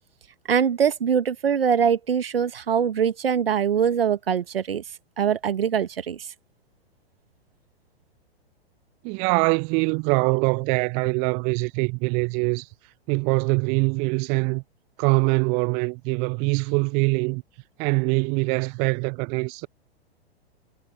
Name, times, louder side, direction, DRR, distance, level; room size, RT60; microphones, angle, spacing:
voice 1, 0.5-4.8 5.2-6.3, right 7 dB, 65° right, 1.8 m, -23 dB
voice 2, 9.0-12.7 13.1-14.6 15.0-17.4 17.8-19.7, right 34 dB, 20° right, 0.5 m, -23 dB
figure-of-eight pair, 105°, 32 cm